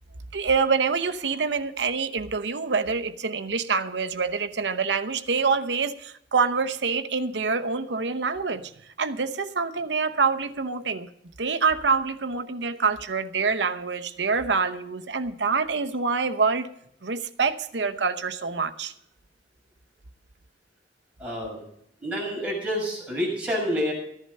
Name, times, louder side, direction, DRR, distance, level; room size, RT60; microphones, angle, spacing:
voice 1, 0.3-8.7 9.0-11.1 11.4-16.7 17.0-18.9, right 5 dB, 70° right, 0.8 m, -26 dB
voice 2, 21.2-21.6 22.0-23.9, equal, 5° right, 6.8 m, -28 dB
14.5 x 11.0 x 5.4 m
head